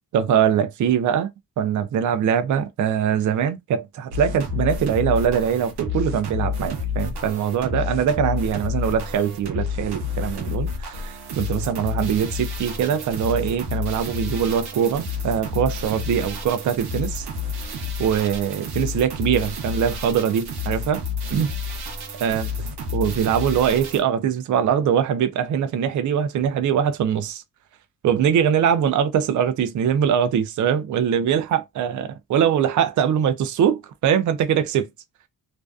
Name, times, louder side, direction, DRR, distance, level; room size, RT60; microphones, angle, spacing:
voice 1, 0.1-1.3 1.6-17.3 18.0-21.0 21.3-21.5 22.2-22.4 22.9-27.4 28.0-34.9, right 8 dB, 55° right, 0.4 m, -22 dB
sound 1, 4.1-24.0, left 4 dB, 85° right, 0.7 m, -30 dB
2.5 x 2.2 x 2.3 m
cardioid pair, 90°, 37 cm